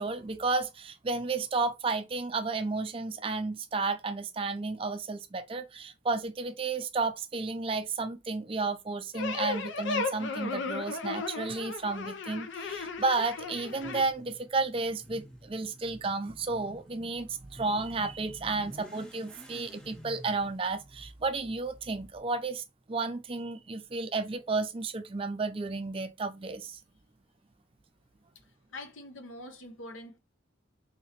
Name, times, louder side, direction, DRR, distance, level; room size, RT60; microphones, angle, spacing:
voice 1, 0.0-26.8, right 3 dB, 25° right, 0.4 m, -32 dB
sound 1, 9.1-14.0, left 4 dB, 70° left, 0.5 m, -35 dB
Motorcycle / Accelerating revving vroom, 13.3-22.2, equal, 5° left, 0.7 m, -52 dB
voice 2, 28.7-30.2, left 1 dB, 90° left, 0.8 m, -44 dB
3.5 x 2.9 x 2.9 m
head